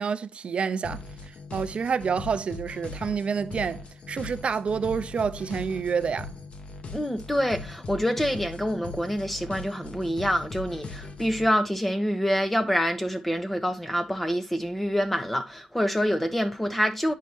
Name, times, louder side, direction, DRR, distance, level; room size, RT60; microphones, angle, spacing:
voice 1, 0.0-6.3, right 6 dB, 50° right, 0.4 m, -28 dB
sound 1, 0.8-11.5, left 3 dB, 60° left, 1.1 m, -40 dB
voice 2, 6.9-17.1, equal, 5° left, 0.9 m, -26 dB
9.2 x 5.6 x 3.0 m
wide cardioid pair, 155°, 2 cm